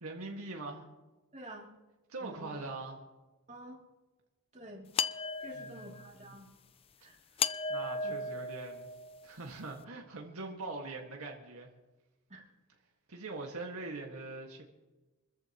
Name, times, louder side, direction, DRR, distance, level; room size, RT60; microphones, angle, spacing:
voice 1, 0.0-0.8 2.1-3.0 5.5-5.9 7.7-8.9 9.2-11.7 13.1-14.6, right 3 dB, 75° right, 0 dB, 1.8 m, -42 dB
voice 2, 1.3-1.7 2.2-2.5 3.5-3.8 4.5-4.9 5.4-6.5 7.0-7.2 8.0-8.1 12.3-12.4, right 1 dB, 35° right, -2 dB, 2.8 m, -49 dB
sound 1, 5.0-6.1 7.4-9.3, left 4 dB, 25° left, 0.4 m, -35 dB
25.0 x 14.0 x 3.0 m, 1.1 s
head